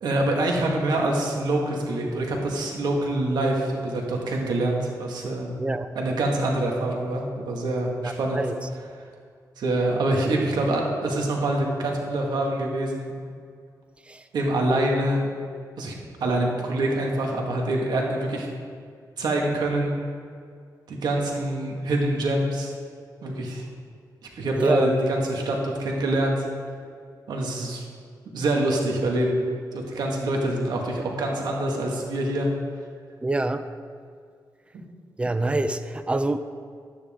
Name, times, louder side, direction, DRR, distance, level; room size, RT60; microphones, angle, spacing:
voice 1, 0.0-5.5 6.0-8.4 9.6-13.1 14.3-15.3 15.8-15.9 16.2-18.5 19.2-20.0 20.9-22.7 23.2-23.7 24.4-26.5 27.3-27.9 28.3-29.4 29.7-32.5, right 1 dB, 80° right, 0 dB, 1.9 m, -25 dB
voice 2, 5.6-5.9 8.0-8.5 14.1-14.2 24.5-24.9 33.2-33.6 35.2-36.4, right 2 dB, 15° right, 10 dB, 0.5 m, -26 dB
12.0 x 9.8 x 3.7 m, 2.1 s
cardioid pair, 100°, 7 cm